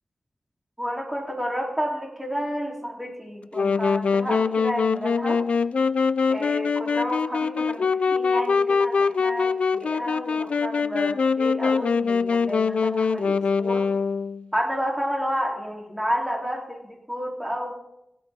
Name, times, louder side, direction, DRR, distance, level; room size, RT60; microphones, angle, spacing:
voice 1, 0.8-5.4 6.3-13.9 14.5-17.7, equal, 10° right, -1 dB, 3.3 m, -30 dB
Wind instrument woodwind instrument, 3.5-14.5, left 5 dB, 80° left, 0.3 m, -23 dB
17.0 x 11.0 x 3.6 m, 0.85 s
wide cardioid pair, 100°, 2 cm